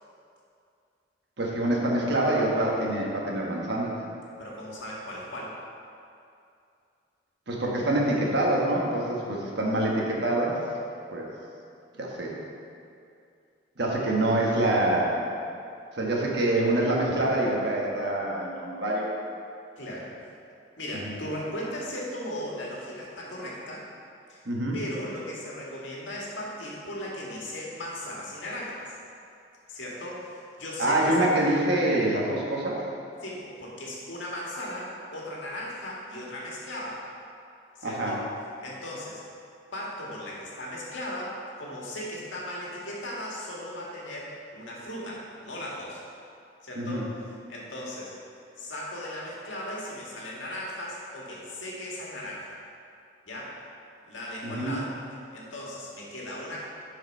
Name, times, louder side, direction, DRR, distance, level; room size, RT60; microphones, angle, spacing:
voice 1, 1.4-3.9 7.5-10.6 11.1-11.3 12.0-12.4 13.8-15.2 16.0-19.1 21.0-21.2 24.4-24.8 30.8-32.8 37.8-38.2 46.7-47.0 54.4-54.8, right 1 dB, 60° right, -2 dB, 1.3 m, -25 dB
voice 2, 4.4-5.6 19.8-20.1 20.8-23.9 24.3-24.4 24.7-29.0 29.7-31.1 33.2-37.1 37.8-38.2 38.6-39.2 39.7-46.0 46.6-47.1 47.5-48.1 48.6-52.6 53.2-53.6 54.1-54.9 55.3-56.6, left 1 dB, 80° left, -4 dB, 1.8 m, -37 dB
7.8 x 4.9 x 5.4 m, 2.5 s
head